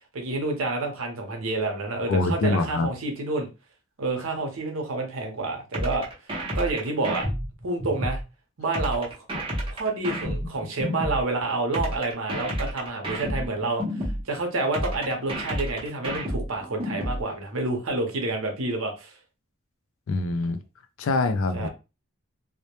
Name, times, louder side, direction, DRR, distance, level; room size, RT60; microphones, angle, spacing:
voice 1, 0.1-3.5 4.0-6.1 6.5-7.3 7.6-8.2 8.6-9.4 9.7-19.1 21.5-21.7, right 2 dB, 65° right, 3 dB, 0.7 m, -29 dB
voice 2, 2.1-2.9 20.1-20.6 21.0-21.7, left 3 dB, 65° left, 9 dB, 0.4 m, -24 dB
sound 1, 5.7-8.2 8.7-11.2 11.7-14.2 14.7-17.2, equal, 25° right, 0.6 m, -30 dB
2.1 x 2.0 x 2.9 m, 0.29 s
head